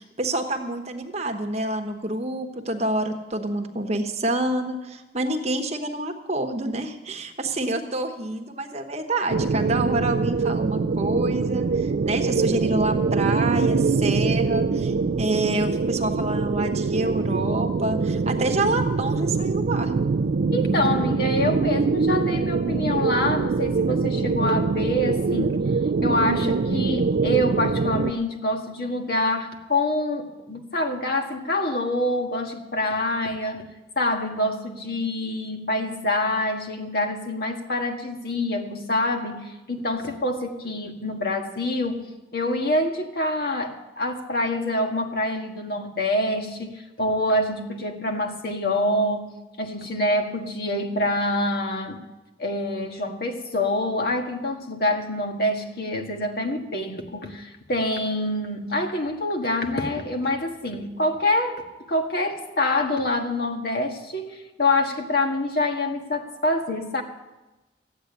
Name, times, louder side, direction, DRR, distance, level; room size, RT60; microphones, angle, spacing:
voice 1, 0.0-19.9, right 2 dB, 35° right, 4 dB, 1.2 m, -27 dB
sound 1, 9.3-28.1, right 4 dB, 55° right, 0.4 m, -24 dB
voice 2, 20.5-25.6 26.0-33.7 33.9-52.0 52.4-67.0, left 1 dB, 55° left, 3 dB, 1.6 m, -26 dB
14.5 x 8.7 x 9.2 m, 1.1 s
head